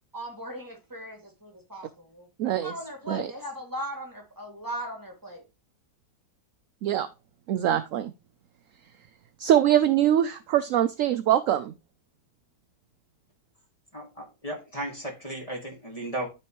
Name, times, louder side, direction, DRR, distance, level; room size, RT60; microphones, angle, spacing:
voice 1, 0.1-5.4, right 1 dB, 10° right, 2.4 m, -38 dB
voice 2, 2.4-2.7 3.1-3.3 6.8-7.1 7.5-8.1 9.4-11.7, right 11 dB, 75° right, 0.7 m, -23 dB
voice 3, 13.9-16.3, right 1 dB, 20° left, 2.0 m, -35 dB
12.0 x 4.3 x 3.1 m
omnidirectional pair, 1.8 m